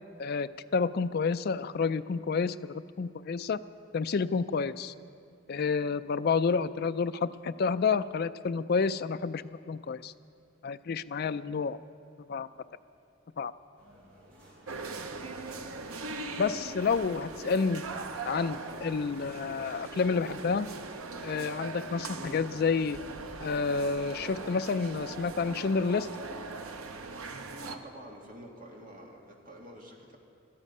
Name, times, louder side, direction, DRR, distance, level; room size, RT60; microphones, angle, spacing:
voice 1, 0.2-3.6 3.9-4.9 5.5-10.1 10.6-11.8 12.3-12.5 13.4-13.5 16.4-17.8 18.2-20.7 21.2-23.0 23.4-26.1, left 5 dB, 50° left, 11 dB, 0.4 m, -29 dB
sound 1, 13.8-21.4, equal, 65° right, 4.3 m, -55 dB
sound 2, 14.7-27.8, right 3 dB, 90° right, 0.9 m, -40 dB
voice 2, 27.6-30.2, right 1 dB, 40° right, 0 dB, 2.1 m, -47 dB
18.5 x 13.0 x 5.4 m, 2.4 s
head